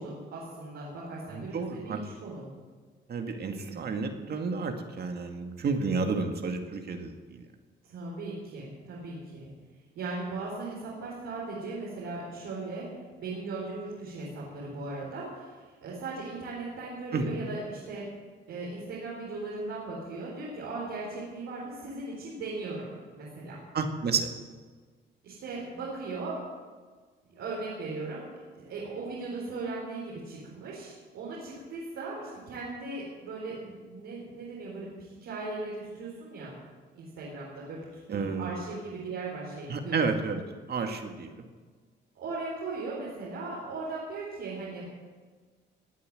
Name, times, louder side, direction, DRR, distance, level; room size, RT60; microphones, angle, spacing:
voice 1, 0.0-2.5 7.8-9.5 9.9-12.9 13.2-18.1 18.5-23.6 25.2-26.4 27.3-28.2 28.6-36.5 36.9-40.1 42.1-44.9, right 3 dB, 85° right, -6 dB, 4.7 m, -38 dB
voice 2, 1.3-2.0 3.1-7.5 17.1-17.3 23.7-24.3 38.1-38.5 39.7-40.4 40.7-41.4, right 4 dB, 55° right, 5 dB, 2.1 m, -31 dB
19.0 x 8.6 x 7.8 m, 1.5 s
cardioid pair, 90°, 20 cm